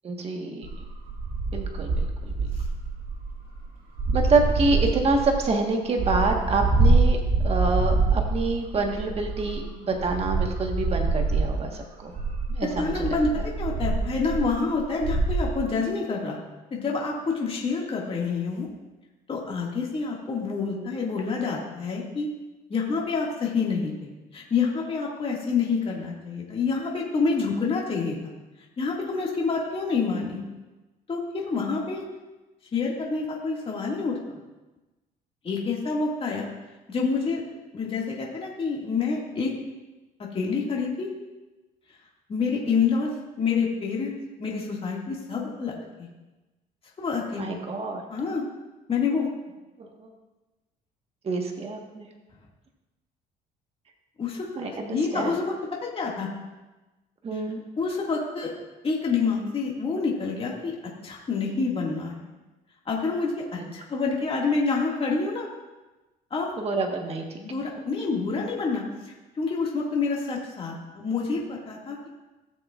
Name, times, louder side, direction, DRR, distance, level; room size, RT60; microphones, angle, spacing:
voice 1, 0.0-0.7 1.5-2.5 4.1-7.2 7.4-12.1 12.5-13.2 47.4-48.1 50.0-50.1 51.2-52.1 54.6-55.3 57.2-57.6 66.6-67.4, right 3 dB, 35° right, 2 dB, 1.4 m, -27 dB
sound 1, 0.6-3.6 4.0-5.5 5.8-9.6 9.9-11.7 12.1-15.5, right 3 dB, 55° right, 2.4 m, -25 dB
voice 2, 12.8-16.4 16.7-18.7 19.3-22.3 22.7-23.9 24.3-28.2 28.8-30.4 31.1-32.0 32.7-34.2 35.4-36.5 36.9-37.4 37.7-39.5 40.2-41.1 42.3-43.1 43.4-44.1 44.4-46.1 47.0-47.5 48.1-48.4 48.9-49.3 54.2-54.5 54.9-55.5 55.8-56.3 57.8-58.5 58.8-60.7 61.0-62.3 62.9-63.4 63.7-65.5 66.3-66.5 67.4-72.1, left 4 dB, 35° left, -3 dB, 2.0 m, -27 dB
17.0 x 7.0 x 2.5 m, 1.1 s
cardioid pair, 110°, 17 cm